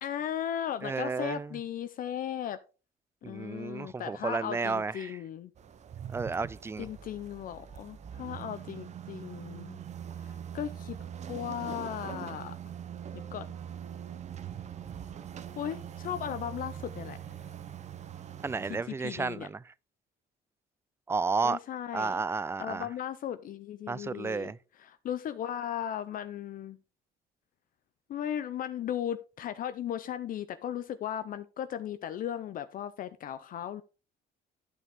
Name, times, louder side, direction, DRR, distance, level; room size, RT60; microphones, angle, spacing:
voice 1, 0.0-2.6 3.3-5.5 6.8-9.8 10.2-11.0 11.3-12.5 13.1-13.5 15.6-17.2 18.7-19.5 21.4-22.2 22.6-24.5 24.8-26.8 28.1-33.8, left 10 dB, 55° left, 0.6 m, -36 dB
voice 2, 0.8-1.6 3.2-5.2 6.1-6.9 18.4-19.6 21.1-21.6 21.9-22.9 23.9-24.6, right 4 dB, 15° right, 0.3 m, -32 dB
sound 1, 5.6-18.8, right 9 dB, 45° right, 0.8 m, -42 dB
11.0 x 5.9 x 3.6 m
cardioid pair, 110°, 17 cm